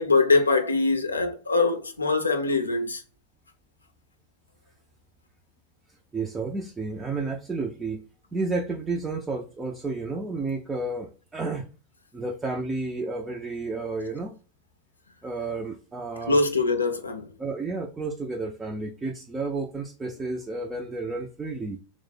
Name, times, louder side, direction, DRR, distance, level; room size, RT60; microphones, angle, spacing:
voice 1, 0.0-3.0 16.3-17.3, left 3 dB, 80° left, 0.5 m, -23 dB
voice 2, 6.1-8.1 8.3-11.7 12.1-14.4 15.2-16.4 17.4-21.8, right 3 dB, 15° right, 0.4 m, -31 dB
3.0 x 2.0 x 3.4 m
figure-of-eight pair, 90°, 0 cm